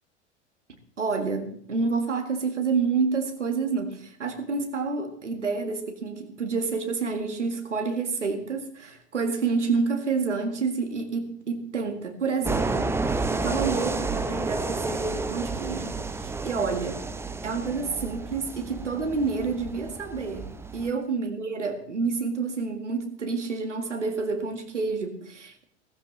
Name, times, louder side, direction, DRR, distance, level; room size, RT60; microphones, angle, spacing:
voice 1, 1.0-17.1 17.4-25.6, right 4 dB, 80° right, 5 dB, 1.9 m, -29 dB
sound 1, 12.4-20.9, right 3 dB, 5° right, 0.7 m, -31 dB
15.5 x 15.0 x 3.2 m, 0.62 s
figure-of-eight pair, 85°, 36 cm